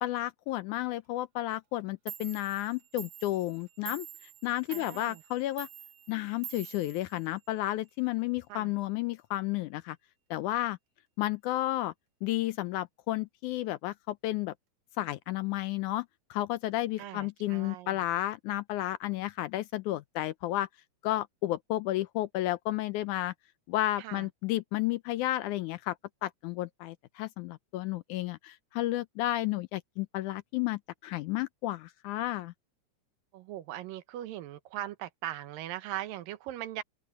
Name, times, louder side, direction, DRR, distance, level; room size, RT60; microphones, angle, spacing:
voice 1, 0.0-4.1 4.4-5.7 6.1-10.0 10.3-10.8 11.2-11.9 12.2-14.5 15.0-20.7 21.0-23.3 23.7-26.0 26.2-32.5, left 15 dB, 80° left, 1.9 m, -32 dB
Clock, 1.8-1.9 2.1-7.7, right 9 dB, 65° right, 2.7 m, -47 dB
voice 2, 4.7-5.2 8.5-8.7 17.0-18.0 24.0-24.3 33.3-36.8, right 13 dB, 85° right, 2.7 m, -40 dB
open air
omnidirectional pair, 3.9 m